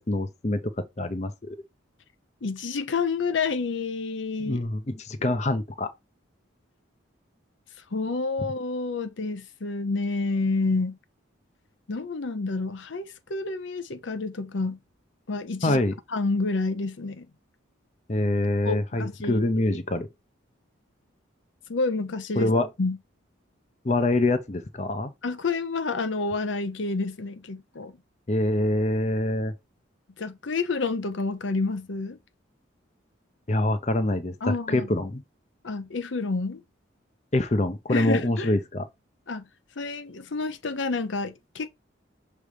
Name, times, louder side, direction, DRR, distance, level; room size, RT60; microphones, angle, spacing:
voice 1, 0.0-1.3 4.4-5.9 15.6-15.9 18.1-20.1 22.4-22.7 23.8-25.1 28.3-29.5 33.5-34.4 34.7-35.2 37.3-38.9, left 2 dB, 35° left, 0.6 m, -25 dB
voice 2, 2.4-4.6 7.9-11.0 11.9-14.8 15.3-15.8 16.1-17.3 18.6-19.8 21.7-22.5 22.8-23.0 25.2-27.9 30.2-32.2 34.4-34.9 35.6-36.6 37.9-38.5 39.3-39.5 39.8-41.7, left 3 dB, 70° left, 0.7 m, -29 dB
6.4 x 3.2 x 4.9 m
head